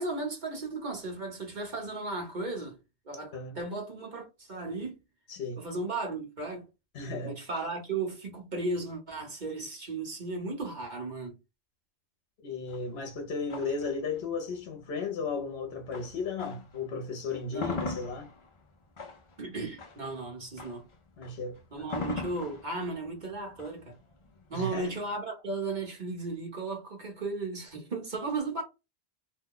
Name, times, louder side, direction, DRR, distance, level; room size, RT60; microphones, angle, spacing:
voice 1, 0.0-2.8 3.1-5.0 5.6-6.6 7.2-11.3 17.5-17.8 19.4-20.9 21.7-24.0 24.5-28.6, right 3 dB, 45° right, 1.2 m, -35 dB
voice 2, 5.3-5.6 6.9-7.4 12.4-18.3 21.2-22.2 24.5-24.9, left 4 dB, 75° left, 1.0 m, -35 dB
sound 1, 12.7-16.8 17.2-25.2, left 3 dB, 45° left, 0.4 m, -41 dB
2.8 x 2.2 x 3.7 m
omnidirectional pair, 1.1 m